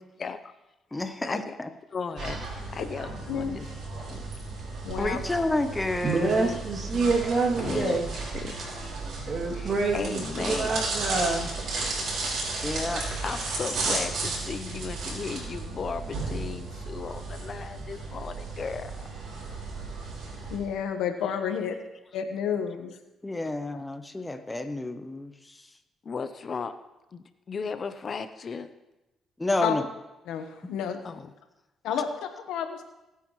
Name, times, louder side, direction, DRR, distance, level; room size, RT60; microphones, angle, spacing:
voice 1, 0.2-0.5 1.2-1.6 1.9-3.6 4.1-4.2 7.6-8.0 8.3-8.7 9.5-10.9 12.6-12.8 13.2-19.0 26.0-26.7 27.1-28.7 31.0-31.2, left 5 dB, 45° left, 11 dB, 0.7 m, -35 dB
voice 2, 0.9-1.7 5.0-6.6 12.6-13.0 23.2-25.3 29.4-29.8, left 2 dB, 15° left, 9 dB, 0.9 m, -29 dB
sound 1, 2.2-20.6, right 3 dB, 70° right, 5.1 m, -34 dB
voice 3, 3.3-3.6 4.8-5.2 6.9-7.2 20.5-21.8 22.1-22.9 29.6-29.8 30.2-31.0 31.8-32.8, left 8 dB, 90° left, 6 dB, 1.2 m, -30 dB
voice 4, 6.0-8.1 9.3-11.5, right 3 dB, 50° right, 1 dB, 2.8 m, -26 dB
22.0 x 9.3 x 3.2 m, 1.0 s
cardioid pair, 90°, 0 cm